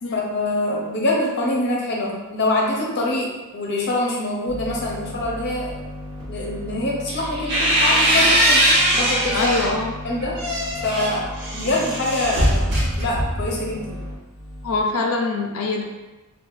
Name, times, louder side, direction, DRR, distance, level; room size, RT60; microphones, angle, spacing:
voice 1, 0.1-5.8 6.3-8.6 8.9-9.6 10.0-10.4 10.8-14.0, left 1 dB, 50° left, -3 dB, 0.7 m, -25 dB
sound 1, 4.5-14.8, left 1 dB, 20° right, 1.1 m, -35 dB
sound 2, 7.1-9.7 10.2-13.5, equal, 50° right, 0.9 m, -21 dB
voice 2, 9.3-9.9 14.6-15.8, left 3 dB, 80° left, 2 dB, 0.4 m, -23 dB
2.8 x 2.3 x 4.0 m, 1.1 s
head